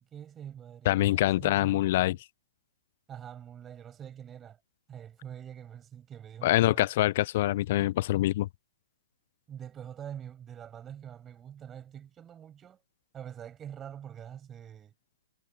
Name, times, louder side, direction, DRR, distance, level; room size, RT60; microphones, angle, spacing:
voice 1, 0.1-2.2 3.1-4.6 4.9-6.9 9.5-12.8 13.1-14.9, right 9 dB, 20° right, 6.5 m, -45 dB
voice 2, 0.9-2.2 6.4-8.5, left 15 dB, 50° left, 0.6 m, -25 dB
hypercardioid pair, 120°, 0 cm